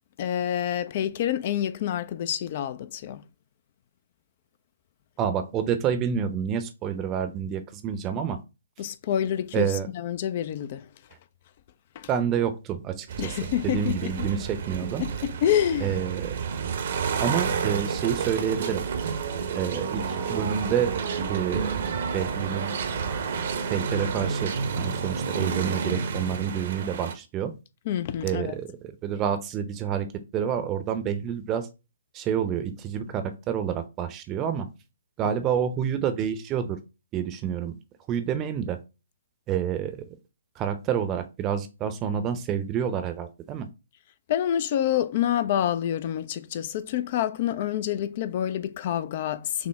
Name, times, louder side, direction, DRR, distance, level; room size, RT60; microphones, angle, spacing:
voice 1, 0.2-3.2 8.8-10.9 12.0-12.1 13.2-14.3 15.0-16.0 27.9-28.5 44.3-49.7, left 10 dB, 45° left, 0.3 m, -27 dB
voice 2, 5.2-8.4 9.5-9.9 12.1-13.4 13.6-15.0 15.8-16.4 17.2-18.8 19.5-21.0 21.3-22.8 23.7-27.6 28.2-30.1 30.3-31.7 32.1-34.7 35.2-36.8 37.1-37.7 38.1-38.8 39.5-40.2 40.6-43.7, right 8 dB, 25° right, 0.6 m, -28 dB
sound 1, 13.1-27.1, right 6 dB, 55° right, 0.8 m, -30 dB
6.2 x 2.1 x 3.4 m
figure-of-eight pair, 130°, 0 cm